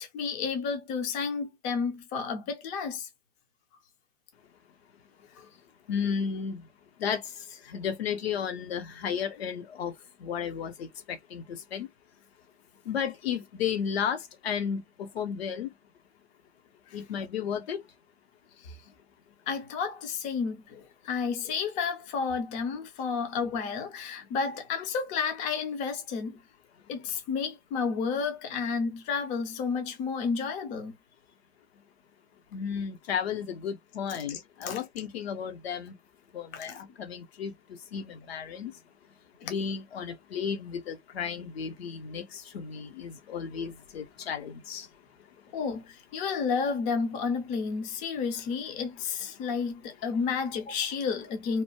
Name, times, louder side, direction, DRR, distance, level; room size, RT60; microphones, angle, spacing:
voice 1, 0.0-3.1 5.4-5.5 18.6-18.8 19.5-26.4 26.9-30.9 34.1-34.8 36.5-36.8 39.4-39.5 45.5-51.6, left 5 dB, 20° left, 0.6 m, -31 dB
voice 2, 5.9-6.6 7.0-7.2 7.7-9.9 10.2-11.9 12.9-15.7 16.9-17.8 32.5-35.9 36.3-37.5 37.9-38.7 39.4-44.9, left 7 dB, 60° left, 1.0 m, -33 dB
3.0 x 2.2 x 2.8 m
hypercardioid pair, 125°, 36 cm